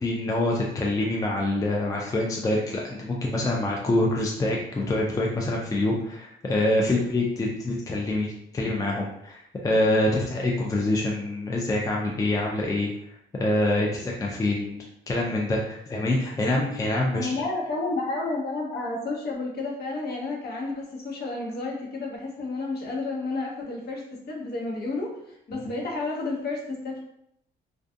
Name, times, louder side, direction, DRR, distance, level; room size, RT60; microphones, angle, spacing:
voice 1, 0.0-12.9 13.3-17.3 25.5-25.7, left 1 dB, 15° left, -2 dB, 0.4 m, -26 dB
voice 2, 17.1-27.0, left 3 dB, 55° left, -3 dB, 0.9 m, -31 dB
2.4 x 2.2 x 2.5 m, 0.75 s
cardioid pair, 90°, 20 cm